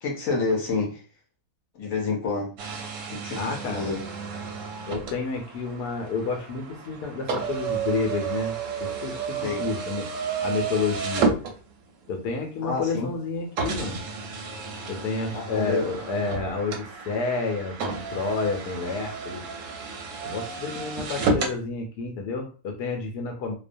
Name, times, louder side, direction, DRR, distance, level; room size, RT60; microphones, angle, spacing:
voice 1, 0.0-1.0 1.7-2.5 3.1-4.0 9.4-9.7 12.6-13.1 15.3-15.8, left 4 dB, 65° left, -1 dB, 1.0 m, -28 dB
sound 1, 2.6-12.1 12.8-12.9 13.6-21.6, right 4 dB, 65° right, 0.8 m, -31 dB
voice 2, 3.4-3.9 4.9-8.5 8.8-10.1 10.4-11.3 12.1-14.0 14.9-19.4 20.2-23.5, left 4 dB, 85° left, 3 dB, 1.2 m, -30 dB
2.6 x 2.1 x 2.5 m, 0.36 s
omnidirectional pair, 1.7 m